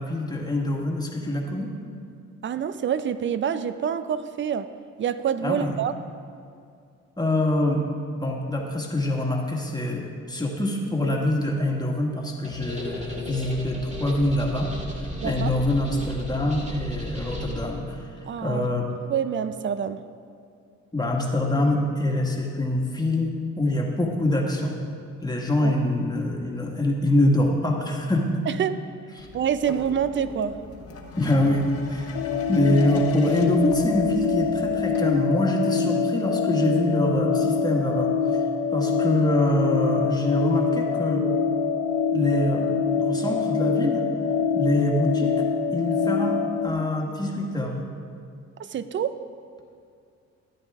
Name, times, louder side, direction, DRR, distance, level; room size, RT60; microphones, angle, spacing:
voice 1, 0.0-1.7 5.4-5.7 7.2-7.8 8.1-14.7 15.0-18.0 18.4-18.9 20.9-24.8 25.2-28.4 29.2-29.3 31.2-32.2 32.5-38.1 38.7-41.3 42.1-44.1 44.5-45.3 45.7-47.8, left 1 dB, 15° left, 0 dB, 1.7 m, -25 dB
voice 2, 2.4-4.7 5.0-5.9 15.2-15.5 18.2-18.7 19.1-20.0 25.6-25.7 28.5-28.8 29.3-30.6 48.6-49.2, right 8 dB, 40° right, 12 dB, 0.5 m, -26 dB
sound 1, 12.4-17.6, equal, 25° right, 1.9 m, -35 dB
sound 2, 29.2-35.0, left 3 dB, 50° left, 1.4 m, -42 dB
sound 3, 32.1-46.7, left 5 dB, 70° left, 0.7 m, -25 dB
13.0 x 10.0 x 3.6 m, 2.3 s
cardioid pair, 90°, 30 cm